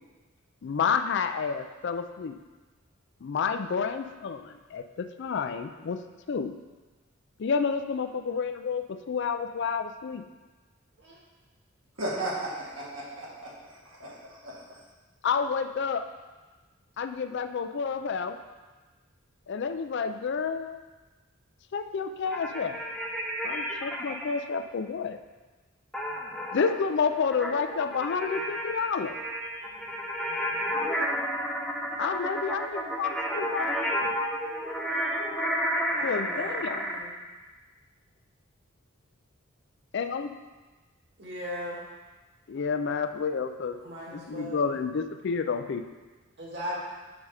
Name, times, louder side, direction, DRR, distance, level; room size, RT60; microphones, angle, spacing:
voice 1, 0.6-2.4 3.2-6.0 6.3-6.6 7.4-10.2 15.2-16.0 17.0-18.4 19.5-20.8 21.7-22.8 23.4-25.2 26.5-29.2 32.0-34.1 36.0-36.8 39.9-40.3 42.5-43.8 44.1-45.8, left 5 dB, 60° left, 8 dB, 0.4 m, -30 dB
voice 2, 12.0-14.8, right 1 dB, 75° right, -5 dB, 2.0 m, -36 dB
sound 1, 22.3-24.3 25.9-37.0, equal, 5° left, 0.7 m, -31 dB
voice 3, 35.9-37.1 41.2-41.8 43.8-44.8 46.4-46.8, equal, 55° right, -5 dB, 2.0 m, -38 dB
6.1 x 5.4 x 4.9 m, 1.2 s
head